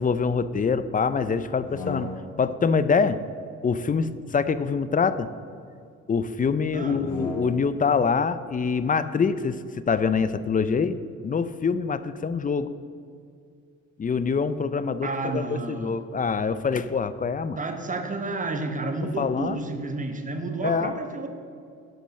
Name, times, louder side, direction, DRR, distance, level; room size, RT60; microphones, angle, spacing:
voice 1, 0.0-2.1 2.4-3.2 3.6-5.3 6.1-11.0 11.2-12.7 14.0-17.6 18.8-19.6 20.6-20.9, left 5 dB, 30° left, 14 dB, 0.5 m, -25 dB
sound 1, 1.5-2.6 3.8-5.5 6.8-7.8, left 2 dB, 75° left, 2.5 m, -39 dB
voice 2, 6.7-7.0 15.0-16.0 17.6-21.3, right 2 dB, 25° right, 6 dB, 1.1 m, -30 dB
11.5 x 5.3 x 6.4 m, 2.3 s
cardioid pair, 90°, 30 cm